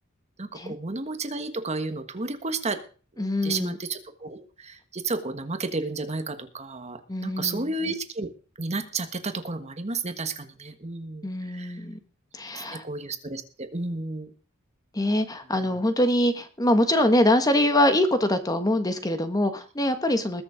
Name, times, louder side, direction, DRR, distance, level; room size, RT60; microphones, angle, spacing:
voice 1, 0.4-2.8 3.1-8.3 8.6-11.8 12.5-14.3 15.6-15.8, right 3 dB, 35° right, 8 dB, 1.4 m, -32 dB
voice 2, 3.2-3.8 7.1-7.7 11.2-12.0 12.3-12.8 14.9-20.4, left 1 dB, 20° left, 8 dB, 1.4 m, -24 dB
20.5 x 7.1 x 5.0 m, 0.38 s
head